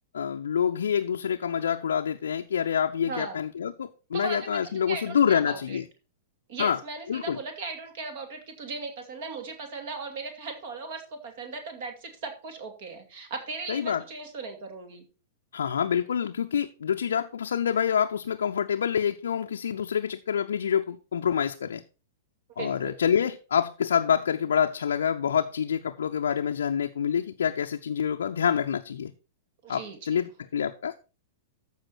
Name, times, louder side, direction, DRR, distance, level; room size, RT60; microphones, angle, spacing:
voice 1, 0.1-5.9 6.6-6.8 7.1-7.4 13.7-14.0 15.5-21.8 22.6-29.1 29.7-31.1, left 8 dB, 65° left, 4 dB, 0.6 m, -27 dB
voice 2, 3.0-3.4 4.1-5.8 6.5-15.0 22.6-23.0 29.6-30.3, right 4 dB, 50° right, 6 dB, 2.4 m, -38 dB
14.0 x 4.9 x 4.3 m, 0.32 s
figure-of-eight pair, 100°, 0 cm